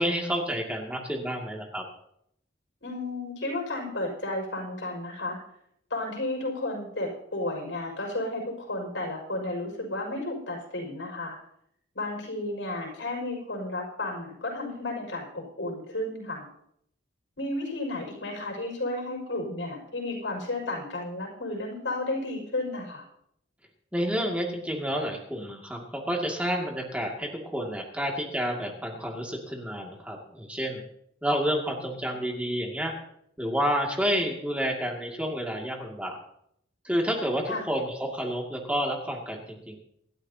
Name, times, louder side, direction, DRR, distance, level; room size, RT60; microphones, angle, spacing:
voice 1, 0.0-1.8 23.9-30.8 31.2-32.9 33.4-36.2 36.8-39.8, equal, 5° right, 0 dB, 2.3 m, -29 dB
voice 2, 2.8-5.4 5.9-11.4 11.9-16.5 17.4-23.0 37.5-37.6, left 2 dB, 85° left, 1 dB, 5.9 m, -33 dB
26.5 x 12.0 x 2.9 m, 0.72 s
head